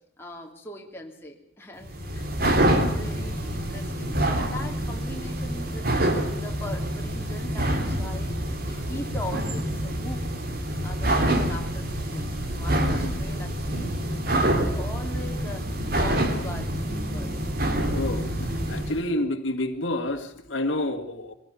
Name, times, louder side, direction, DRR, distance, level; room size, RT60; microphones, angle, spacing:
voice 1, 0.2-5.9 6.3-8.4 8.6-10.2 10.8-13.9 14.4-17.3, left 1 dB, 15° left, 3.0 m, -40 dB
sound 1, 1.8-19.0, right 1 dB, 50° right, 2.9 m, -26 dB
voice 2, 17.9-18.3 18.7-21.3, left 1 dB, 85° left, 2.0 m, -28 dB
23.0 x 16.5 x 6.9 m
head